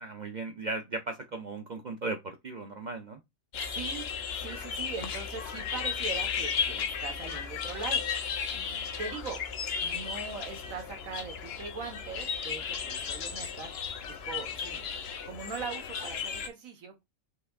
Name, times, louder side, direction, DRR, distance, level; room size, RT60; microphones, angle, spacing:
voice 1, 0.0-3.2, right 3 dB, 55° right, 0.5 m, -37 dB
sound 1, 3.5-16.5, left 6 dB, 55° left, 0.8 m, -34 dB
voice 2, 3.5-4.1 4.3-9.4 9.8-13.7 14.1-14.9 15.2-17.0, right 5 dB, 70° right, 1.6 m, -41 dB
5.8 x 3.4 x 2.3 m
omnidirectional pair, 1.5 m